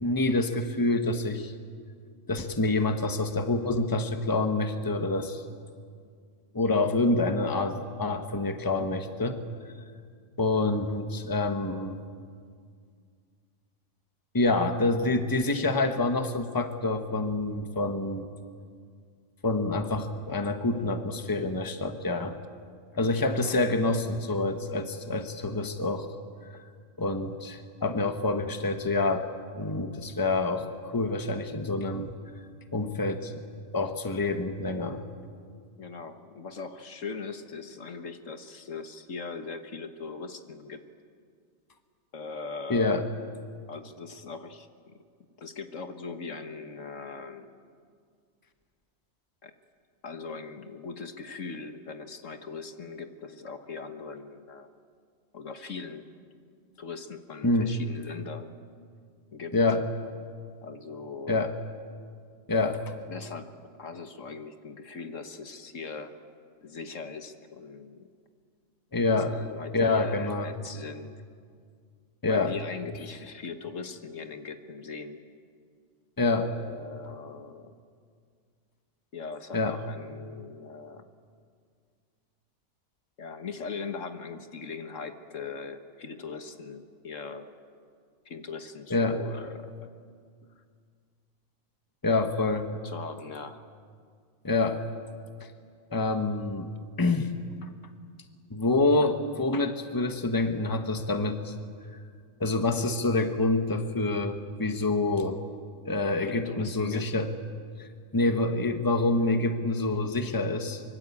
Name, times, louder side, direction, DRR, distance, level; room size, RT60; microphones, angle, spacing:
voice 1, 0.0-1.5 2.3-5.4 6.5-9.4 10.4-12.0 14.3-18.2 19.4-22.3 23.0-26.1 27.0-29.3 29.5-32.1 32.7-33.4 33.7-35.0 42.7-43.0 57.4-57.7 59.5-59.8 61.3-61.5 62.5-62.8 68.9-69.3 69.7-70.5 72.2-72.5 76.2-76.5 79.5-79.7 88.9-89.2 92.0-92.7 94.4-94.8 95.9-96.7 97.0-97.3 98.5-101.5 102.4-105.4 105.8-107.3 107.8-107.9 108.1-110.8, left 2 dB, 15° left, 7 dB, 1.3 m, -27 dB
voice 2, 35.8-40.8 42.1-42.9 43.7-45.0 45.4-47.6 49.4-49.5 50.0-54.7 55.3-56.0 56.8-58.5 59.3-59.5 60.6-61.5 63.1-63.5 63.8-66.1 66.6-68.1 69.1-71.1 72.2-75.2 76.5-77.8 79.1-81.1 83.2-87.5 88.2-89.9 92.1-92.2 92.8-93.6 106.3-107.0, left 4 dB, 65° left, 8 dB, 1.7 m, -40 dB
24.5 x 24.0 x 8.6 m, 2.1 s
omnidirectional pair, 1.4 m